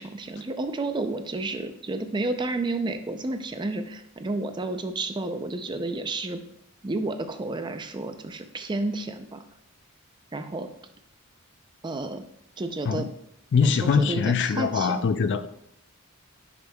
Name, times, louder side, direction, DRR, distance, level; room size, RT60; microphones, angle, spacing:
voice 1, 0.0-6.4 6.8-9.4 10.3-10.7 11.8-12.2 12.6-13.1 13.6-15.1, right 2 dB, 20° right, 8 dB, 0.4 m, -31 dB
voice 2, 13.5-15.5, left 6 dB, 55° left, 12 dB, 0.3 m, -23 dB
10.5 x 5.1 x 2.3 m, 0.74 s
head